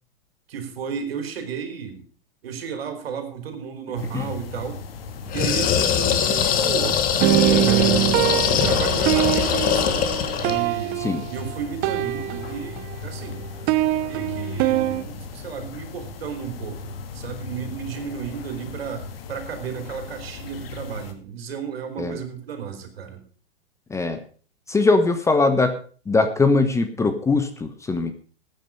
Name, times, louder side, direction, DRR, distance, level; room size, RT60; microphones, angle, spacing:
voice 1, 0.5-2.0 2.4-4.8 5.3-7.0 7.4-8.0 8.5-10.0 10.3-11.0 11.3-13.5 14.1-23.2, right 6 dB, 70° right, 7 dB, 3.6 m, -33 dB
sound 1, 4.0-21.1, left 4 dB, 65° left, 2.3 m, -37 dB
sound 2, 5.3-10.6, left 8 dB, 30° left, 1.6 m, -22 dB
sound 3, 7.2-13.0 13.2-15.0, right 16 dB, 30° right, 0.7 m, -23 dB
voice 2, 24.7-25.7 26.1-28.1, left 3 dB, 10° left, 8 dB, 1.0 m, -20 dB
14.5 x 9.2 x 5.4 m, 0.41 s
hypercardioid pair, 125°, 31 cm